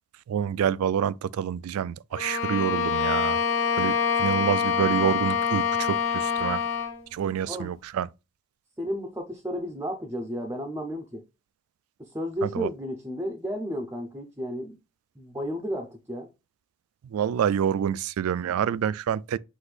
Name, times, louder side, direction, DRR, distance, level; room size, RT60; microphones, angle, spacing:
voice 1, 0.3-3.4 3.8-6.6 7.1-8.1 12.5-12.7 17.1-19.4, right 8 dB, 90° right, 0.3 m, -27 dB
Bowed string instrument, 2.1-7.0, left 6 dB, 65° left, 0.8 m, -25 dB
voice 2, 8.8-11.2 12.0-14.8 15.2-16.3, equal, 10° right, 0.6 m, -33 dB
5.9 x 2.6 x 3.3 m
head